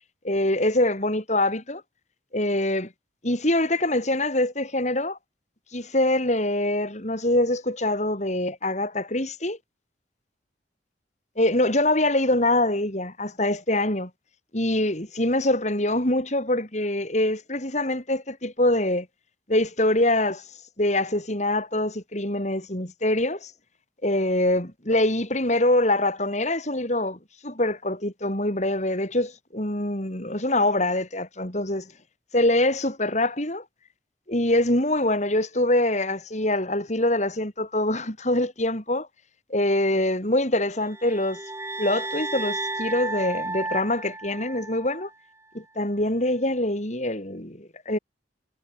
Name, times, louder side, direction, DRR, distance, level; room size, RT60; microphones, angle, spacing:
voice 1, 0.2-1.8 2.3-2.9 3.2-5.2 5.7-9.6 11.4-14.1 14.5-19.1 19.5-20.4 20.8-23.5 24.0-31.9 32.3-33.6 34.3-39.1 39.5-41.4 41.8-45.1 45.5-48.0, left 1 dB, 40° left, 5.4 m, -24 dB
sound 1, 40.8-45.1, right 2 dB, 15° right, 6.4 m, -33 dB
head